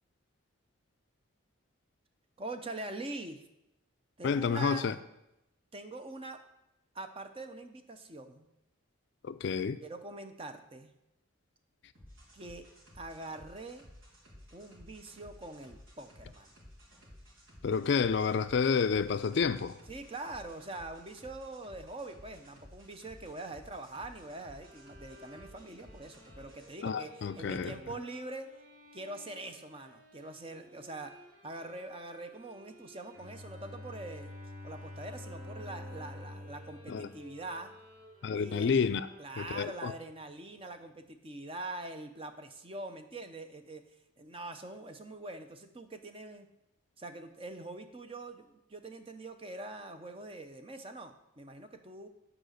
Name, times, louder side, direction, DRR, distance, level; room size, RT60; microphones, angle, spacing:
voice 1, 2.4-3.4 4.2-4.9 5.7-6.4 6.9-8.5 9.8-10.9 12.3-12.7 12.9-13.9 14.5-16.5 19.9-28.5 28.9-31.1 31.4-34.3 34.6-37.7 38.3-38.7 39.2-43.8 44.2-46.5 47.0-52.1, right 2 dB, 25° right, 0.7 m, -44 dB
voice 2, 4.2-4.9 9.2-9.8 17.6-19.8 26.8-27.7 36.9-37.1 38.2-39.1 39.4-39.9, left 5 dB, 55° left, 0.3 m, -29 dB
sound 1, 11.9-26.7, equal, 80° right, 3.4 m, -55 dB
sound 2, 24.5-39.6, right 1 dB, 45° right, 3.6 m, -56 dB
Bowed string instrument, 33.1-38.1, left 2 dB, 65° right, 2.6 m, -47 dB
8.9 x 5.0 x 6.5 m
head